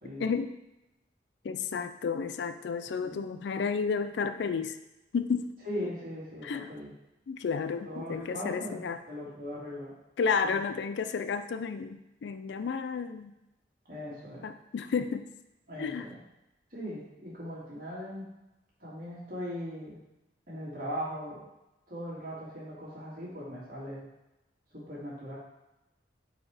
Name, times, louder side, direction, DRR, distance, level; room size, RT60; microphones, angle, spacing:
voice 1, 0.2-0.5 1.4-4.8 5.1-5.5 6.4-6.7 7.3-9.0 10.2-13.3 14.4-15.3 15.8-16.1, left 5 dB, 70° left, 11 dB, 0.4 m, -32 dB
voice 2, 5.6-6.9 7.8-8.8 9.1-9.9 10.5-10.6 13.9-14.5 15.7-16.2 16.7-18.3 18.8-20.0 20.5-21.4 21.9-24.1 24.7-25.4, equal, 45° right, -7 dB, 2.3 m, -39 dB
4.8 x 4.3 x 4.9 m, 0.94 s
head